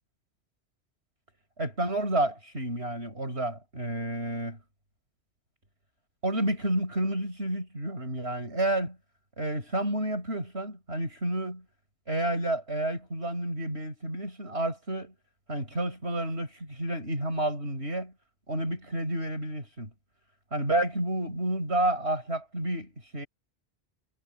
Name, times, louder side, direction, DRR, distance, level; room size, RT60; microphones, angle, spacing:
voice 1, 1.6-4.6 6.2-9.0 9.4-11.6 12.1-15.1 15.5-18.1 18.5-19.9 20.5-23.3, right 1 dB, 75° right, 7.2 m, -30 dB
omnidirectional pair, 1.1 m